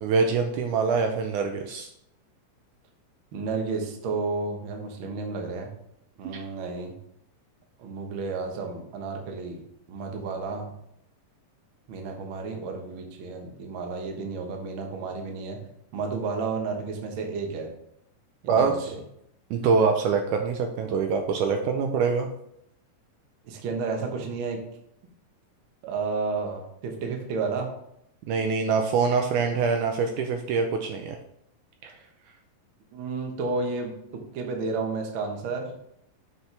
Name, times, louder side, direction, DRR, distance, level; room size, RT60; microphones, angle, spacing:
voice 1, 0.0-1.9 6.2-6.4 18.5-18.9 19.5-22.3 28.3-31.2 31.8-31.9, right 5 dB, 75° right, 4 dB, 1.9 m, -24 dB
voice 2, 3.3-5.7 6.2-6.9 7.8-10.7 11.9-15.6 15.9-17.7 18.4-19.0 23.4-24.6 25.8-27.7 32.9-34.0 34.3-35.7, right 4 dB, 60° right, 2 dB, 1.4 m, -32 dB
7.5 x 6.3 x 3.3 m, 0.75 s
omnidirectional pair, 3.9 m